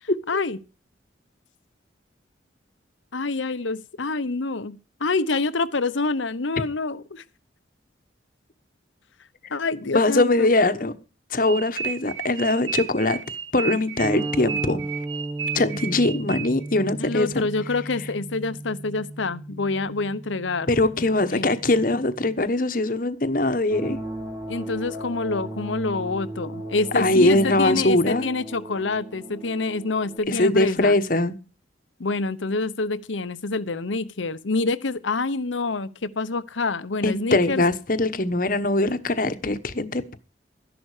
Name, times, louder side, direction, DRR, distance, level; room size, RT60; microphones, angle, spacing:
voice 1, 0.0-0.6 3.1-7.2 9.5-10.5 17.0-20.7 21.3-21.5 24.5-31.0 32.0-37.6, left 3 dB, 80° left, 0.9 m, -27 dB
voice 2, 9.8-10.9 11.3-13.2 13.5-14.9 15.5-17.5 20.7-24.0 26.9-28.3 30.3-31.3 37.0-40.2, left 2 dB, 45° left, 1.1 m, -22 dB
sound 1, 11.4-16.8, right 7 dB, 75° right, 1.5 m, -33 dB
sound 2, 14.0-22.4, right 2 dB, 10° right, 0.7 m, -35 dB
sound 3, 23.7-30.2, right 1 dB, 30° right, 3.8 m, -36 dB
13.0 x 11.0 x 4.9 m
head